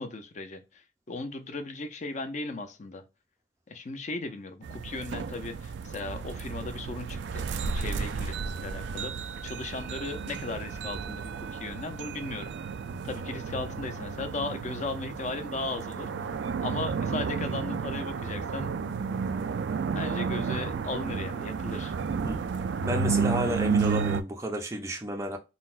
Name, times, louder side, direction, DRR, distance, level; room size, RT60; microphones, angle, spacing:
voice 1, 0.0-3.0 3.7-7.5 7.7-9.1 9.4-12.5 13.0-18.7 19.9-21.9, left 3 dB, 45° left, 0.5 m, -37 dB
sound 1, 4.6-24.2, right 5 dB, 85° right, 0.3 m, -32 dB
voice 2, 22.8-25.4, right 1 dB, 15° right, 0.4 m, -31 dB
3.8 x 2.1 x 2.4 m
head